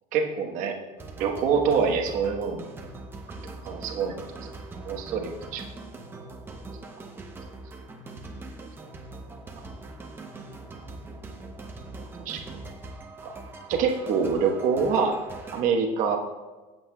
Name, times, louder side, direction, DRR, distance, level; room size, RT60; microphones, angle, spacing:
voice 1, 0.1-0.8 1.2-2.7 3.6-4.5 4.8-5.6 12.2-12.4 13.2-13.3 13.7-15.2 15.5-16.2, right 5 dB, 50° right, 2 dB, 1.2 m, -25 dB
sound 1, 1.0-15.6, right 2 dB, 15° right, 0.7 m, -41 dB
16.0 x 7.7 x 2.2 m, 1.2 s
cardioid pair, 175°, 17 cm